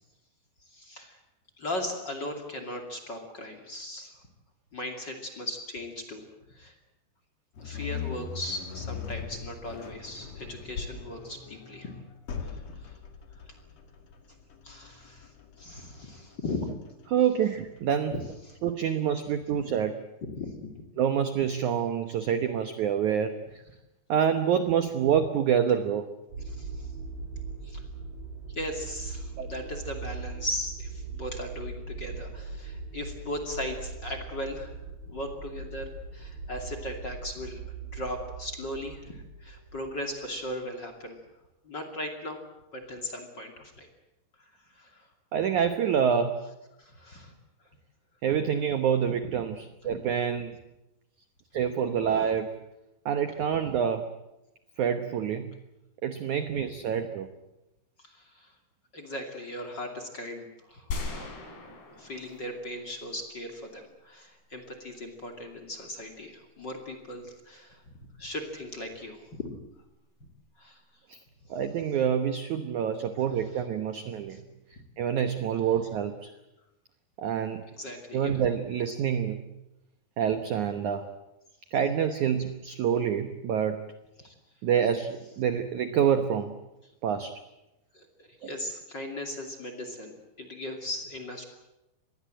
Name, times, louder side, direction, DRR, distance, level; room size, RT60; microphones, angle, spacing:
voice 1, 0.7-1.2 1.6-4.1 4.7-6.2 6.5-6.7 7.6-11.9 12.4-13.0 14.6-15.3 15.6-16.7 18.1-18.2 18.5-18.6 20.2-20.7 26.5-26.9 27.6-27.8 28.5-34.7 35.1-37.6 37.9-41.2 41.6-42.4 42.7-43.9 44.7-45.1 46.8-47.3 49.8-50.0 58.0-58.5 58.9-61.3 62.0-67.8 68.2-69.5 70.6-70.8 74.3-74.4 77.7-78.4 84.2-84.3 87.9-91.4, left 1 dB, 30° left, 3 dB, 2.6 m, -38 dB
sound 1, 7.6-18.7, left 6 dB, 45° left, 2.7 m, -41 dB
voice 2, 17.1-18.2 18.6-19.9 21.0-23.6 24.1-26.0 29.4-29.5 45.3-46.4 48.2-50.5 51.5-52.5 53.0-54.0 54.8-55.5 56.0-57.3 71.1-71.2 71.5-74.4 75.0-76.3 77.2-77.6 78.1-79.4 80.2-81.1 81.7-83.8 84.6-86.6 87.0-87.4, right 8 dB, 75° right, 8 dB, 1.8 m, -27 dB
sound 2, 26.3-40.5, right 4 dB, 55° right, 7.5 m, -40 dB
sound 3, 60.9-63.2, left 3 dB, 65° left, 5.8 m, -39 dB
26.5 x 21.0 x 7.8 m, 0.95 s
omnidirectional pair, 5.1 m